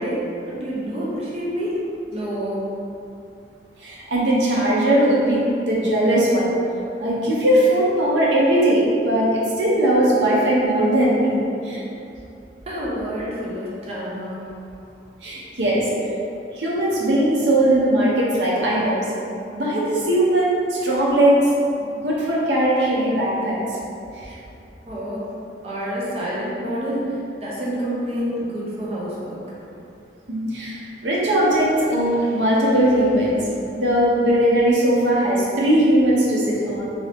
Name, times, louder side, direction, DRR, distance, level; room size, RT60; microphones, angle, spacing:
voice 1, 0.0-1.8 2.1-2.7 12.7-14.5 24.3-24.4 24.9-25.3 25.6-29.4, equal, 35° right, -7 dB, 0.6 m, -28 dB
voice 2, 3.8-6.5 7.0-11.8 15.2-15.9 16.5-19.1 19.5-21.4 22.0-23.6 30.3-30.7 31.0-33.4 33.7-36.9, right 1 dB, 85° right, -5 dB, 0.8 m, -19 dB
2.8 x 2.7 x 3.3 m, 2.7 s
head